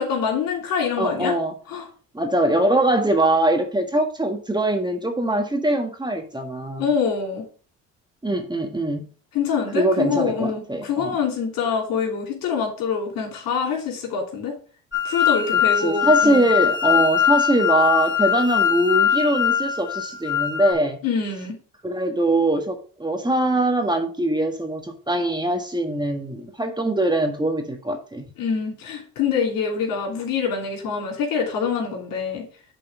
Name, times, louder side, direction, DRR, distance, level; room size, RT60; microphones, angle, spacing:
voice 1, 0.0-1.3 1.7-1.8 6.8-7.4 9.3-14.6 15.0-16.4 21.0-21.6 28.4-32.5, left 6 dB, 75° left, 3.0 m, -25 dB
voice 2, 1.0-1.5 2.1-6.9 8.2-9.1 9.7-11.2 15.8-21.0 21.8-28.3, right 1 dB, 10° right, 1.6 m, -22 dB
sound 1, 14.9-20.7, left 9 dB, 30° left, 2.7 m, -21 dB
7.7 x 4.2 x 5.3 m
supercardioid pair, 65°, 35 cm